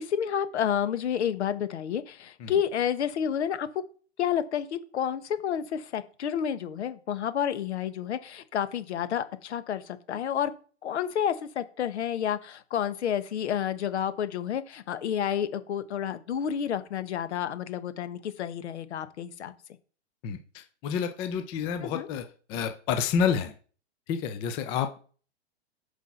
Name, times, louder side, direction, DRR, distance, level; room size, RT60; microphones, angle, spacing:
voice 1, 0.0-3.7 4.2-10.5 10.8-19.5 21.8-22.1, left 9 dB, 75° left, 12 dB, 1.2 m, -30 dB
voice 2, 20.2-23.5 24.1-25.0, left 7 dB, 15° left, 8 dB, 0.4 m, -29 dB
7.9 x 4.8 x 5.7 m, 0.41 s
hypercardioid pair, 145°, 34 cm